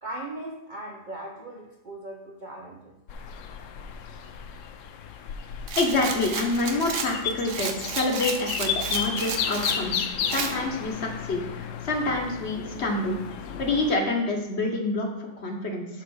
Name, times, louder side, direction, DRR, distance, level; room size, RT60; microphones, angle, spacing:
voice 1, 0.0-3.0, right 1 dB, 90° right, 0 dB, 0.4 m, -38 dB
sound 1, 3.1-14.0, left 7 dB, 70° left, 0.7 m, -33 dB
Rattle, 5.7-9.8 10.3-10.5, right 6 dB, 55° right, 0.9 m, -33 dB
voice 2, 5.8-13.2 13.6-15.9, left 2 dB, 45° left, 2 dB, 1.2 m, -27 dB
5.9 x 4.2 x 6.3 m, 0.98 s
omnidirectional pair, 1.8 m